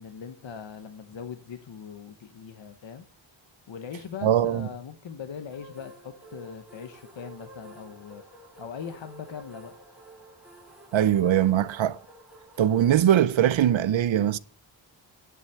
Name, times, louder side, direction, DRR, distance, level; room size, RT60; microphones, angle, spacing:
voice 1, 0.0-3.1 3.7-8.2 8.6-9.7, left 7 dB, 70° left, 1.1 m, -40 dB
voice 2, 4.2-4.7 10.9-12.0 12.6-14.4, right 11 dB, 85° right, 0.7 m, -21 dB
sound 1, 5.5-12.9, right 2 dB, ahead, 2.5 m, -50 dB
10.5 x 7.2 x 6.6 m
wide cardioid pair, 160°, 46 cm